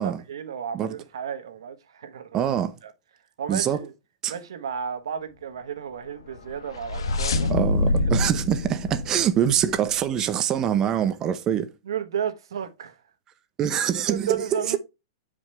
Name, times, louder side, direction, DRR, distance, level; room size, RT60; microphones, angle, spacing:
voice 1, 0.0-2.5 2.8-2.9 3.4-3.9 4.3-7.7 8.9-9.0 11.8-13.0 14.1-14.8, right 8 dB, 85° right, 1.3 m, -33 dB
voice 2, 2.3-2.7 3.5-3.8 4.2-4.3 7.5-11.7 13.6-14.8, right 9 dB, 25° right, 0.7 m, -24 dB
sound 1, 6.3-10.0, left 2 dB, 90° left, 1.2 m, -26 dB
8.9 x 5.1 x 3.3 m
hypercardioid pair, 155°, 2 cm